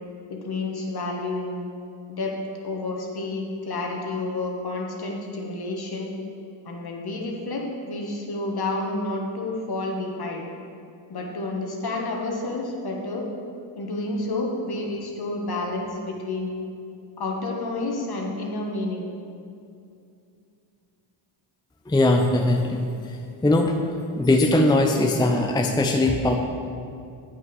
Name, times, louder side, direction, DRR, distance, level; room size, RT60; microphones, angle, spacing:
voice 1, 0.3-1.6 2.1-2.4 2.6-6.1 6.6-10.5 11.1-13.3 13.7-16.5 17.2-19.1, left 2 dB, 50° left, 0 dB, 1.6 m, -30 dB
voice 2, 21.9-23.2 23.4-23.7 24.1-26.3, left 2 dB, 10° left, 3 dB, 0.6 m, -20 dB
8.3 x 5.8 x 5.4 m, 2.5 s
supercardioid pair, 65°, 49 cm